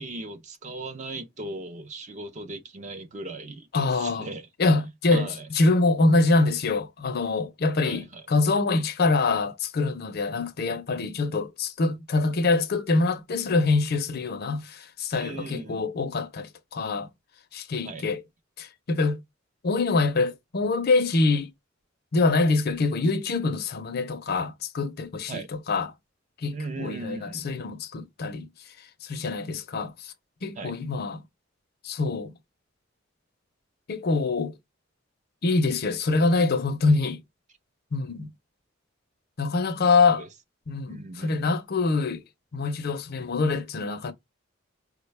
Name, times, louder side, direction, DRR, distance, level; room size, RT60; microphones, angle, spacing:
voice 1, 0.0-4.5 5.1-5.5 7.8-8.2 15.1-15.8 17.8-18.0 25.3-25.5 26.5-27.4 30.6-30.7 40.1-40.3 40.9-41.5, right 2 dB, 35° right, 0.5 m, -37 dB
voice 2, 3.7-4.3 4.6-17.1 17.5-18.2 18.6-19.2 19.6-21.5 22.1-25.9 26.4-28.5 29.0-30.1 30.4-31.2 31.8-32.3 33.9-34.5 35.4-37.2 37.9-38.3 39.4-40.3 40.7-42.2 42.5-44.1, left 3 dB, 50° left, 0.5 m, -25 dB
4.7 x 2.1 x 3.2 m
head